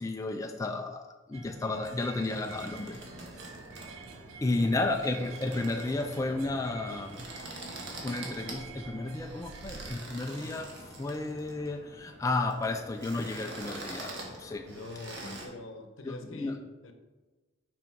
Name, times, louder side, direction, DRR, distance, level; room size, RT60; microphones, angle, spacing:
voice 1, 0.0-3.0 3.4-3.5 4.4-7.3 8.0-14.7 16.0-16.6, left 2 dB, 15° left, 4 dB, 0.3 m, -33 dB
sound 1, 1.3-10.0, right 6 dB, 80° right, 0.5 m, -48 dB
sound 2, 2.0-15.5, right 1 dB, 60° right, 1.4 m, -45 dB
voice 2, 4.6-5.0 14.7-16.9, left 2 dB, 70° left, 6 dB, 0.8 m, -44 dB
5.6 x 5.1 x 4.5 m, 1.2 s
head